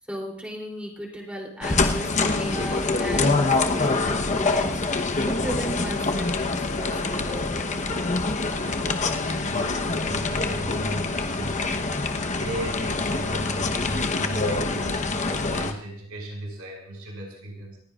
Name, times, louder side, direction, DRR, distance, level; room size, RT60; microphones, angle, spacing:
voice 1, 0.1-7.8, equal, 5° right, -1 dB, 3.2 m, -36 dB
sound 1, 1.6-15.7, left 3 dB, 35° left, 1.0 m, -25 dB
voice 2, 8.6-17.8, right 1 dB, 85° right, 0 dB, 6.1 m, -36 dB
28.5 x 15.5 x 2.5 m, 0.64 s
head